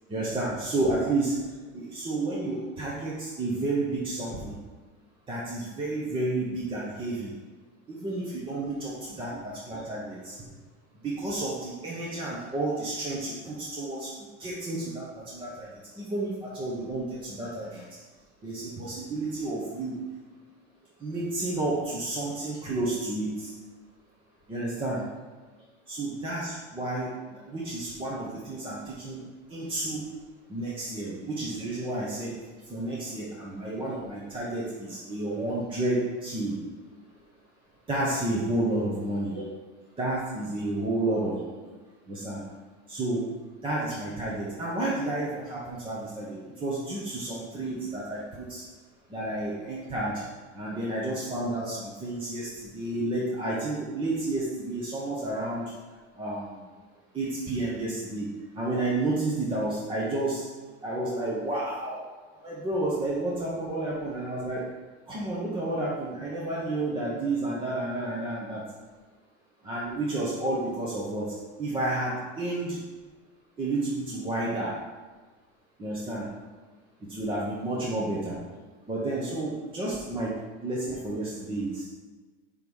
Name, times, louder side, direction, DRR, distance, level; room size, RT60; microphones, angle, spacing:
voice 1, 0.1-1.3 1.7-4.6 5.3-7.3 7.9-10.4 11.0-14.1 14.4-15.1 15.3-15.7 16.0-17.8 18.4-20.0 21.0-23.5 24.5-25.0 25.9-27.1 27.5-29.2 29.5-30.0 30.5-32.3 32.7-36.5 37.9-39.4 40.0-41.4 42.1-42.4 42.9-43.2 43.6-48.6 49.1-50.1 50.5-55.6 56.2-56.5 57.1-58.3 58.6-60.5 60.8-62.0 62.4-64.6 65.1-68.6 69.6-71.2 71.6-72.8 73.6-74.7 75.8-76.3 77.1-78.4 78.9-80.3 80.6-81.8, right 2 dB, 15° right, -6 dB, 1.0 m, -31 dB
5.4 x 5.3 x 6.3 m, 1.3 s
supercardioid pair, 160°, 37 cm